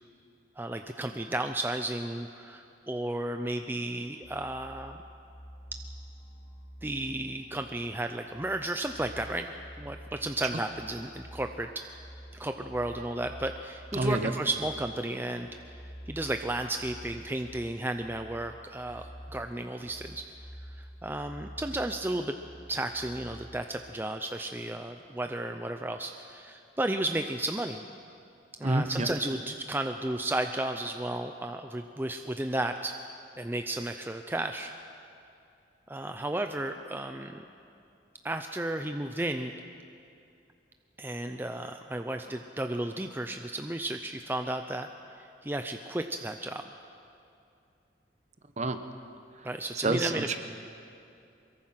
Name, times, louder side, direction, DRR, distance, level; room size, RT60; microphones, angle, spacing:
voice 1, 0.6-5.0 6.8-11.8 12.3-15.5 16.1-20.2 20.8-22.4 22.7-27.8 28.6-33.0 33.4-34.7 35.9-37.5 38.2-39.5 41.0-44.9 45.1-46.6 49.4-50.3, right 1 dB, 10° right, 6 dB, 0.6 m, -33 dB
sound 1, 4.2-23.6, equal, 55° left, 4.4 m, -49 dB
voice 2, 13.9-14.3 28.6-29.1 48.6-48.8 49.8-50.4, right 2 dB, 40° right, 8 dB, 1.1 m, -28 dB
24.0 x 22.0 x 5.8 m, 2.5 s
head